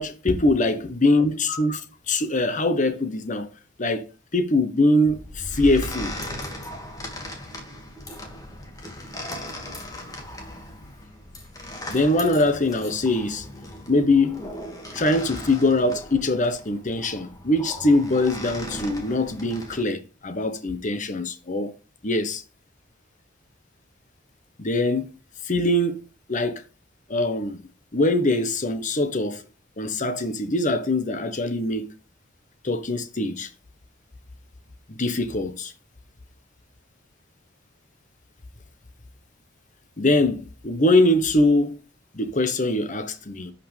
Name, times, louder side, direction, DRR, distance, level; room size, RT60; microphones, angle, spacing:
voice 1, 0.0-3.5 3.8-6.1 11.9-13.5 13.9-14.5 14.9-21.7 22.0-22.4 24.6-25.1 25.4-26.0 26.3-26.6 27.1-27.6 27.9-29.4 29.8-31.9 32.6-33.5 34.9-35.7 40.0-41.8 42.1-43.5, left 2 dB, 40° left, 1.1 m, -23 dB
sound 1, 5.0-19.8, left 1 dB, 20° left, 2.1 m, -37 dB
11.0 x 5.6 x 3.4 m
head